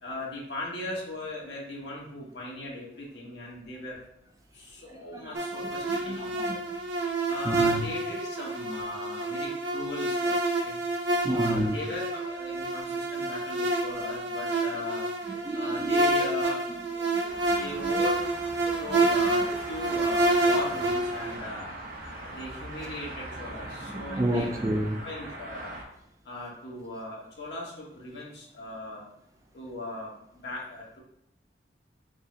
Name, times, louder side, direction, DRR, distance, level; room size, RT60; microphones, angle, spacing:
voice 1, 0.0-4.0 4.5-6.6 7.3-10.4 10.6-10.8 11.3-15.0 15.5-16.6 17.5-18.2 18.8-21.6 22.2-24.5 24.9-25.7 26.2-29.1 29.5-31.0, left 1 dB, 75° left, 1.3 m, -38 dB
voice 2, 4.9-6.8 7.4-7.9 11.2-11.8 14.7-14.8 15.3-16.3 17.0-18.0 18.6-19.0 22.8-22.9 23.9-25.0, right 1 dB, 20° right, 0.4 m, -32 dB
sound 1, 5.3-21.4, right 2 dB, 85° right, 0.9 m, -28 dB
sound 2, 17.3-25.8, right 1 dB, 50° right, 0.8 m, -41 dB
5.2 x 2.1 x 3.7 m
head